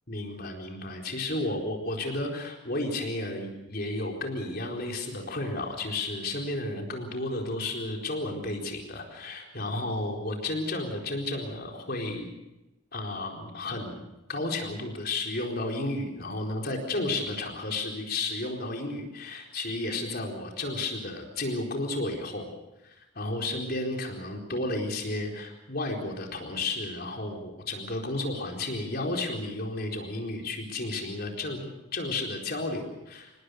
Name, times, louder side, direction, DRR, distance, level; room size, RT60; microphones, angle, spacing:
voice 1, 0.1-12.3 12.9-14.0 14.3-22.5 22.8-33.3, left 2 dB, 50° left, 1 dB, 4.4 m, -32 dB
27.0 x 19.5 x 6.5 m, 0.97 s
head